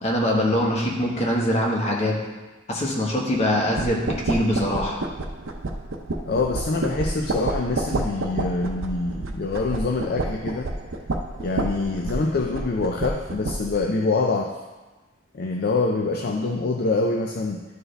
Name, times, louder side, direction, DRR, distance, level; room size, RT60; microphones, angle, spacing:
voice 1, 0.0-2.2 2.7-5.0, equal, 35° left, -2 dB, 1.3 m, -23 dB
sound 1, 3.8-13.8, right 2 dB, 85° right, 0.6 m, -29 dB
voice 2, 6.3-10.7 11.4-14.6 15.3-17.6, left 3 dB, 50° left, 2 dB, 0.5 m, -25 dB
12.0 x 4.6 x 3.3 m, 1.2 s
head